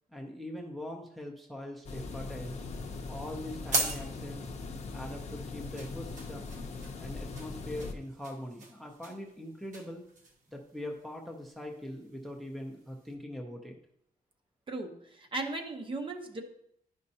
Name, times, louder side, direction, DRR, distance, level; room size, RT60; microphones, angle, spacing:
voice 1, 0.1-2.5 3.1-4.5 4.9-6.5 7.0-10.0 10.5-13.8, left 1 dB, ahead, 2 dB, 0.6 m, -42 dB
sound 1, 1.8-7.9, left 3 dB, 45° left, 0.6 m, -41 dB
sound 2, 2.9-13.1, right 2 dB, 55° right, 1.2 m, -41 dB
voice 2, 14.7-16.4, right 2 dB, 35° right, 4 dB, 0.8 m, -37 dB
10.5 x 5.3 x 2.7 m, 0.74 s
wide cardioid pair, 180°, 16 cm